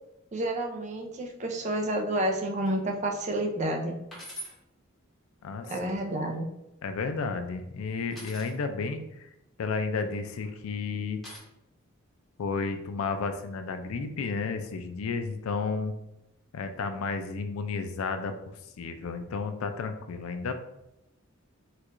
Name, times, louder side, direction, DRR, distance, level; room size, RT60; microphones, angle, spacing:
voice 1, 0.3-4.0 5.7-6.5, right 1 dB, 35° right, 3 dB, 0.4 m, -30 dB
sound 1, 2.6-2.9 3.4-3.5 4.1-4.6 5.7-6.4 8.1-8.5 10.0-10.5 11.2-11.4, equal, ahead, 1.0 m, -44 dB
voice 2, 5.4-6.0 6.8-9.0 9.6-11.2 12.4-15.9 16.5-20.5, left 4 dB, 85° left, 8 dB, 0.4 m, -32 dB
4.4 x 2.3 x 2.5 m, 0.88 s
head